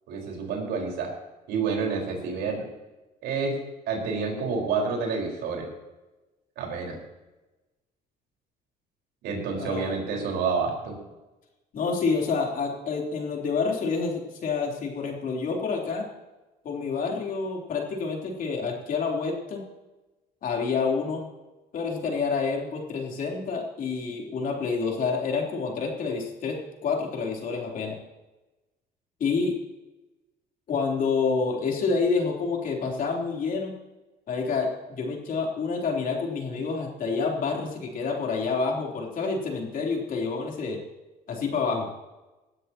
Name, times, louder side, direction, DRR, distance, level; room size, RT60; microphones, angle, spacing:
voice 1, 0.1-1.1 1.5-2.6 3.2-3.6 3.9-5.7 6.6-7.0 9.2-11.0, right 5 dB, 85° right, 0 dB, 4.8 m, -28 dB
voice 2, 9.6-10.0 11.7-16.1 16.6-19.7 20.4-21.3 21.7-28.0 29.2-29.6 30.7-33.8 34.3-40.8 41.3-41.9, left 4 dB, 55° left, 0 dB, 3.6 m, -28 dB
18.5 x 12.5 x 3.0 m, 1.1 s
cardioid pair, 110°, 17 cm